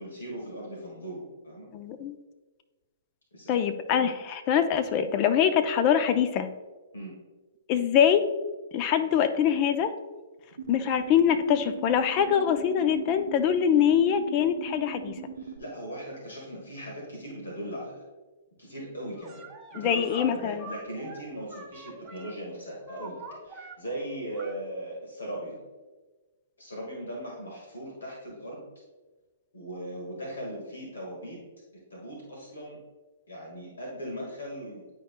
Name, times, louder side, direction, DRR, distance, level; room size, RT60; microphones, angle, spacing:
voice 1, 0.0-1.7 3.3-3.6 6.9-7.1 15.4-17.9 18.6-19.4 19.7-25.6 26.6-28.6 29.5-31.4 31.9-32.8 33.3-34.8, right 1 dB, 80° left, -2 dB, 1.7 m, -39 dB
voice 2, 1.7-2.1 3.5-6.5 7.7-8.2 8.7-9.9 10.7-15.2 19.8-20.6, left 8 dB, 35° left, 9 dB, 0.5 m, -24 dB
sound 1, 10.6-15.6, right 6 dB, 80° right, 0.8 m, -40 dB
sound 2, 19.2-20.2 20.6-22.3 22.7-23.8 24.3-24.5, right 4 dB, 20° right, 1.0 m, -45 dB
10.0 x 4.4 x 2.2 m, 1.2 s
hypercardioid pair, 120°, 0 cm